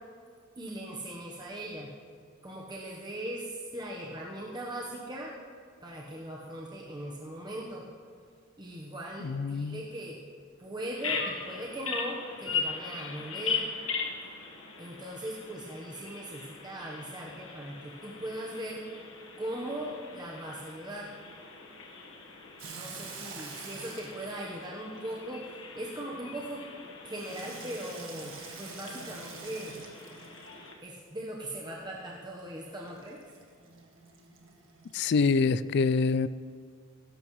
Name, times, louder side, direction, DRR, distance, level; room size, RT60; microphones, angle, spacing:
voice 1, 0.6-1.9 2.4-5.3 5.8-7.9 8.6-10.2 10.6-13.7 14.8-18.8 19.4-21.1 22.7-26.6 27.0-29.8 30.8-33.2, right 1 dB, 20° right, -3 dB, 1.0 m, -39 dB
voice 2, 9.2-9.8 34.9-36.3, left 4 dB, 55° left, 16 dB, 0.4 m, -26 dB
Bird vocalization bird call bird song, 11.0-30.8, left 5 dB, 75° left, 1.4 m, -40 dB
Water tap faucet / Sink (filling or washing), 22.6-25.6 27.1-30.9 32.9-35.4, right 5 dB, 70° right, 1.6 m, -47 dB
16.5 x 13.5 x 3.2 m, 2.1 s
head